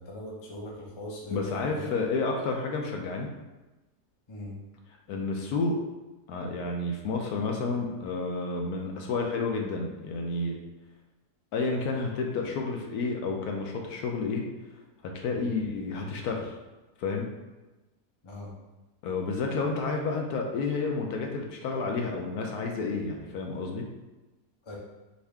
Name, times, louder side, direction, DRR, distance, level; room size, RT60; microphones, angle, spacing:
voice 1, 0.0-1.9 4.3-4.6 18.2-18.5 24.6-24.8, left 1 dB, 35° left, -3 dB, 0.4 m, -40 dB
voice 2, 1.3-3.3 5.1-5.8 6.3-10.6 11.5-14.5 15.0-16.5 17.0-17.3 19.0-23.9, left 3 dB, 70° left, 1 dB, 1.1 m, -30 dB
5.3 x 2.5 x 3.4 m, 1.1 s
omnidirectional pair, 1.8 m